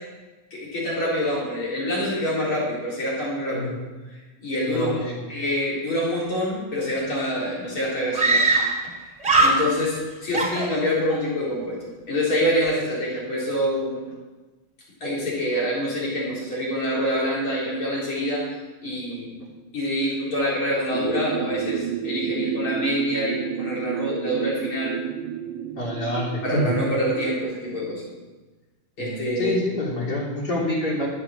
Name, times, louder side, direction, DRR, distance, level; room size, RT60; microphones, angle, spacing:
voice 1, 0.5-3.7 4.4-5.0 5.3-8.4 9.0-11.8 12.1-14.0 15.0-18.4 18.8-19.4 19.7-24.9 26.4-28.0 29.0-29.6, equal, 80° left, -5 dB, 4.8 m, -26 dB
voice 2, 4.7-5.2 25.8-26.7 29.0-31.1, left 1 dB, 50° left, -4 dB, 3.8 m, -27 dB
Screaming, 7.0-7.1 7.3-7.4 8.1-8.9 9.2-10.0 10.3-11.2, right 2 dB, 15° right, 2.9 m, -21 dB
sound 1, 20.9-27.4, right 9 dB, 70° right, 1.3 m, -31 dB
12.0 x 8.1 x 7.1 m, 1.2 s
omnidirectional pair, 2.3 m